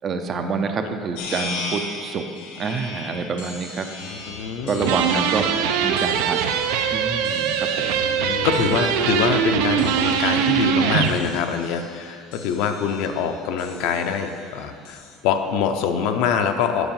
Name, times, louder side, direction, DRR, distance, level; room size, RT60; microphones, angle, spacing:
voice 1, 0.0-2.2 2.6-3.9 4.6-5.5 5.8-6.4 6.9-8.0, right 5 dB, 25° right, 6 dB, 0.5 m, -27 dB
sound 1, 1.1-15.2, left 3 dB, 75° left, 1.4 m, -39 dB
voice 2, 3.8-5.2 8.0-16.9, left 7 dB, 60° left, 6 dB, 0.6 m, -25 dB
Musical instrument, 4.1-10.4, left 5 dB, 55° right, 1.4 m, -45 dB
sound 2, 4.8-11.2, right 8 dB, 75° right, 0.6 m, -22 dB
8.0 x 5.6 x 7.1 m, 2.3 s
cardioid pair, 180°, 0 cm